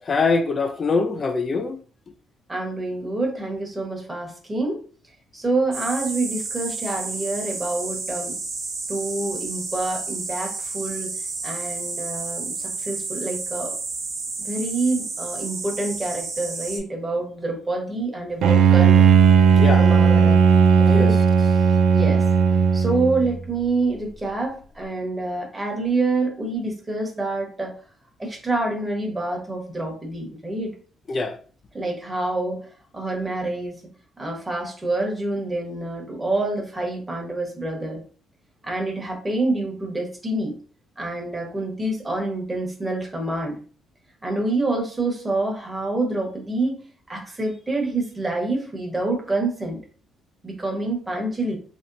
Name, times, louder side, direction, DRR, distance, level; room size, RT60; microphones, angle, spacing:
voice 1, 0.1-1.8 19.6-19.8 20.9-21.2 31.1-31.4, left 4 dB, 40° left, 0.4 m, -23 dB
voice 2, 2.5-4.8 5.3-8.4 8.9-11.1 11.4-13.7 14.4-19.1 19.8-20.4 20.8-21.1 21.9-22.2 22.7-27.7 28.2-30.7 31.7-32.6 32.9-33.7 34.2-38.0 38.6-40.5 41.0-43.6 44.2-46.8 47.1-49.8 50.4-51.6, right 2 dB, 20° right, 1.2 m, -27 dB
sound 1, 5.7-16.8, right 3 dB, 60° right, 1.0 m, -31 dB
Bowed string instrument, 18.4-23.4, right 6 dB, 75° right, 0.4 m, -16 dB
3.1 x 2.9 x 2.6 m
cardioid pair, 100°, 0 cm